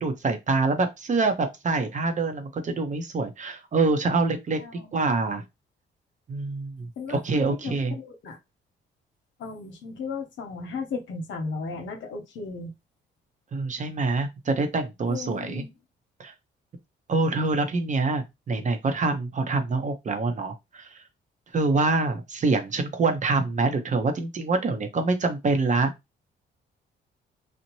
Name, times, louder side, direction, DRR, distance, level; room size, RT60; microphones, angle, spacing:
voice 1, 0.0-4.6 4.9-5.4 6.3-7.9 13.5-15.6 16.2-16.3 17.1-20.9 21.5-25.9, right 3 dB, 40° right, 0.7 m, -25 dB
voice 2, 4.6-4.9 7.0-7.2 7.5-8.4 9.4-12.7 15.1-15.7, left 4 dB, 70° left, 0.9 m, -35 dB
2.7 x 2.1 x 3.0 m
cardioid pair, 90°, 20 cm